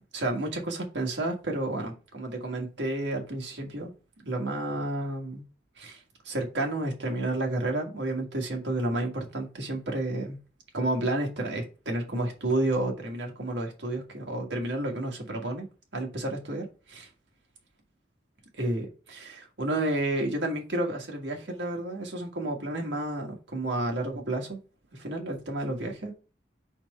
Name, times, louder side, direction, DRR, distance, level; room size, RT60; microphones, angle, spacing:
voice 1, 0.0-3.9 4.2-5.4 5.8-6.0 6.2-10.4 10.7-15.6 15.9-17.1 18.6-24.6 24.9-26.1, right 1 dB, 80° right, 1.7 m, -31 dB
4.4 x 4.3 x 5.4 m
head